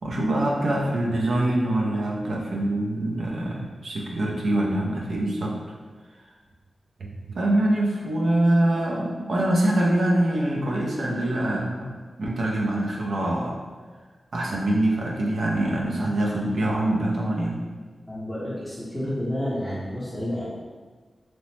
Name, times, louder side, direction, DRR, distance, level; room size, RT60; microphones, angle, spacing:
voice 1, 0.0-5.6 7.0-11.9 12.2-13.6 14.3-17.6, right 1 dB, 75° right, -2 dB, 0.4 m, -24 dB
voice 2, 18.1-20.5, left 1 dB, 5° right, -10 dB, 0.7 m, -30 dB
2.8 x 2.0 x 3.1 m, 1.4 s
wide cardioid pair, 150°, 0 cm